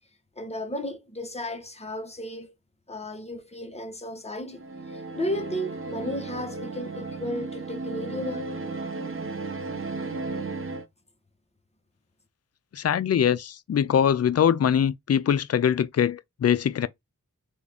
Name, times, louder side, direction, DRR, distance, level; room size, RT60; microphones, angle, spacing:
voice 1, 0.4-2.5 2.9-8.5, left 1 dB, 20° left, 1.1 m, -34 dB
sound 1, 4.5-10.9, right 3 dB, 40° right, 0.8 m, -34 dB
voice 2, 12.7-16.9, left 8 dB, 50° left, 0.4 m, -23 dB
3.6 x 2.5 x 3.4 m
cardioid pair, 50°, 33 cm